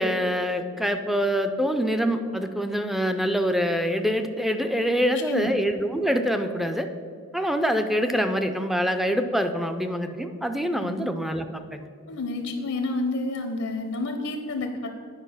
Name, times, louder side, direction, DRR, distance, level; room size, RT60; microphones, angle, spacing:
voice 1, 0.0-6.9 7.3-11.5 11.7-11.9, equal, ahead, 7 dB, 0.4 m, -25 dB
voice 2, 5.0-5.5 10.8-11.0 12.1-14.9, left 2 dB, 80° left, 5 dB, 0.7 m, -29 dB
9.7 x 5.1 x 5.6 m, 2.3 s
head